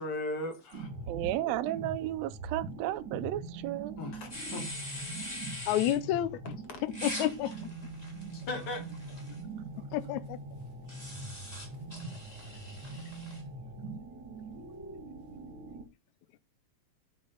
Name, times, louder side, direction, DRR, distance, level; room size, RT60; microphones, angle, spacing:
voice 1, 0.0-0.9 4.0-4.7 8.3-8.9, left 2 dB, 55° left, 2.4 m, -37 dB
sound 1, 0.7-15.8, right 3 dB, 45° right, 2.4 m, -43 dB
voice 2, 1.1-4.0, right 15 dB, 75° right, 1.7 m, -33 dB
sound 2, 4.3-6.0 6.9-9.4 10.9-13.4, left 1 dB, 15° left, 3.2 m, -43 dB
voice 3, 5.7-6.5 6.8-7.7 9.9-10.4, left 12 dB, 80° left, 2.1 m, -30 dB
8.9 x 7.9 x 4.1 m
omnidirectional pair, 3.4 m